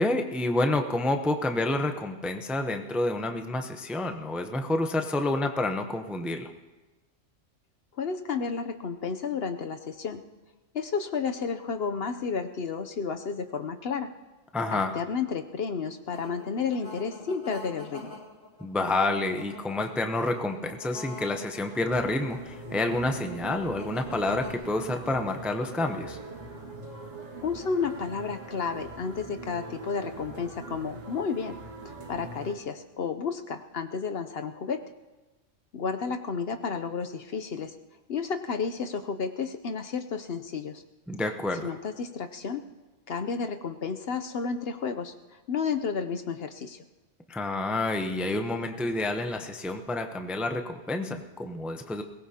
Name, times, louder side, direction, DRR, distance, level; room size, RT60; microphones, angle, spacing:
voice 1, 0.0-6.5 14.5-15.0 18.6-26.2 41.1-41.7 47.3-52.0, left 2 dB, ahead, 6 dB, 0.6 m, -29 dB
voice 2, 8.0-10.2 10.7-14.1 14.7-18.1 27.4-31.6 31.8-34.8 35.7-37.7 38.1-40.8 41.6-42.6 43.1-45.1 45.5-46.8, left 5 dB, 60° left, 7 dB, 0.9 m, -32 dB
sound 1, 16.1-24.5, left 3 dB, 90° left, 1.7 m, -45 dB
sound 2, 21.9-32.5, right 3 dB, 90° right, 2.1 m, -42 dB
21.5 x 19.0 x 2.8 m, 1.2 s
omnidirectional pair, 1.3 m